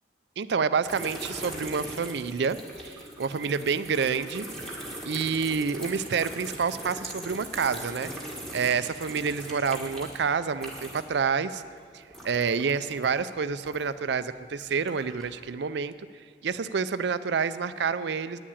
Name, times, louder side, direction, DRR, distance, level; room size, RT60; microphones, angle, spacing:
voice 1, 0.4-4.5 5.0-8.1 8.5-11.6 11.9-15.9 16.4-18.4, right 5 dB, 60° right, 13 dB, 0.4 m, -28 dB
sound 1, 0.8-11.2 11.5-14.0 14.5-15.3, right 1 dB, ahead, 1.7 m, -40 dB
9.8 x 7.4 x 8.6 m, 2.1 s
head